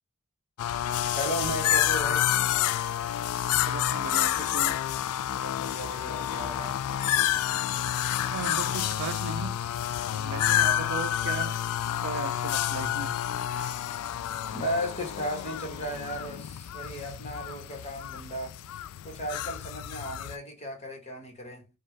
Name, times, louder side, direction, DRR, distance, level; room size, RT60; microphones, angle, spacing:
sound 1, 0.6-20.4, left 11 dB, 75° left, 0.3 m, -29 dB
voice 1, 1.2-2.3 5.3-6.8 10.1-10.4 14.5-18.5 19.0-21.7, equal, 30° left, 1.3 m, -35 dB
voice 2, 3.5-4.7 8.2-9.6 10.2-11.6 12.0-13.2, right 6 dB, 60° right, 0.3 m, -37 dB
5.2 x 2.4 x 3.2 m
head